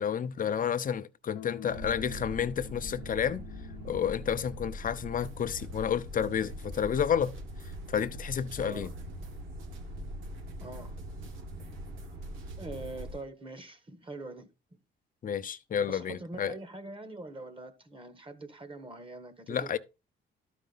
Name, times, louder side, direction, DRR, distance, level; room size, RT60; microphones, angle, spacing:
voice 1, 0.0-3.4 3.8-7.3 7.9-8.9 15.2-16.5 19.5-19.8, left 8 dB, 45° left, 0.7 m, -30 dB
sound 1, 1.3-4.5, left 10 dB, 80° left, 0.7 m, -47 dB
sound 2, 1.7-13.1, equal, 55° right, 2.1 m, -42 dB
sound 3, 5.2-13.2, right 3 dB, 90° right, 1.4 m, -53 dB
voice 2, 8.6-8.9 10.6-11.0 12.6-14.8 15.9-19.8, right 2 dB, 25° right, 1.4 m, -43 dB
12.0 x 5.1 x 4.0 m
cardioid pair, 90°, 20 cm